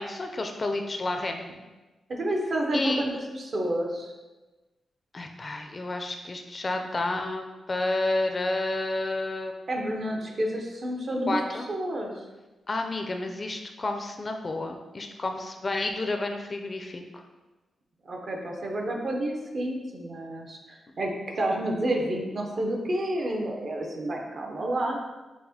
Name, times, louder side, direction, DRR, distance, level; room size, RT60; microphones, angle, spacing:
voice 1, 0.0-1.5 2.7-3.1 5.1-9.5 11.3-11.7 12.7-17.2, left 2 dB, 35° left, 4 dB, 0.4 m, -30 dB
voice 2, 2.1-4.1 9.7-11.4 11.7-12.2 18.0-25.0, right 1 dB, 55° right, 1 dB, 0.6 m, -30 dB
5.8 x 2.1 x 2.7 m, 1.2 s
cardioid pair, 80°, 0 cm